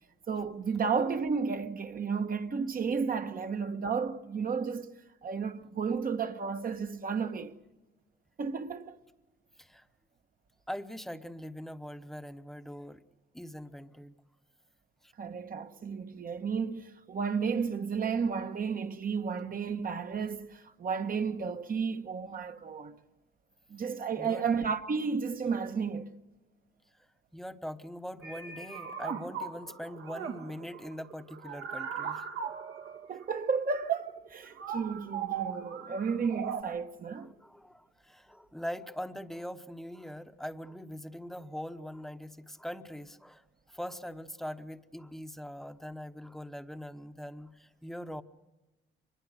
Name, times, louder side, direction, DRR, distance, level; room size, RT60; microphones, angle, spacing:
voice 1, 0.3-4.9 5.2-7.5 8.4-9.0 15.2-23.0 23.7-26.1 33.1-37.3, right 5 dB, 45° right, 1.2 m, -32 dB
voice 2, 10.7-13.0 13.3-14.2 15.0-15.1 24.2-24.4 27.0-27.1 27.3-32.2 37.2-48.2, equal, ahead, 1.0 m, -42 dB
sound 1, 28.2-36.6, right 7 dB, 80° right, 2.1 m, -39 dB
23.5 x 21.0 x 6.5 m
cardioid pair, 90°, 20 cm